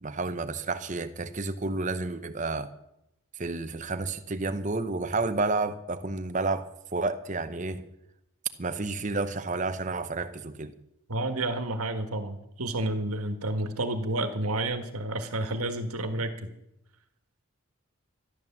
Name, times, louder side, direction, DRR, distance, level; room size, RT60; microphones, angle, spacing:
voice 1, 0.0-2.7 3.4-7.9 8.6-10.7, right 3 dB, 35° right, 0.8 m, -31 dB
voice 2, 11.1-16.5, right 2 dB, 80° right, 1.6 m, -30 dB
13.0 x 11.0 x 7.3 m
head